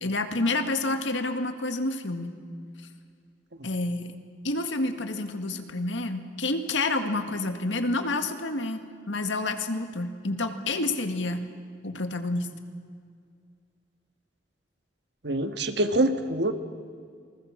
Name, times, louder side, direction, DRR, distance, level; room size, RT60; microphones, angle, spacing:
voice 1, 0.0-2.3 3.6-4.1 4.4-8.8 9.1-11.4 11.8-12.5, left 2 dB, 75° left, 7 dB, 2.0 m, -29 dB
voice 2, 15.2-16.5, right 1 dB, 60° right, 8 dB, 1.6 m, -25 dB
27.0 x 20.5 x 7.4 m, 2.2 s
head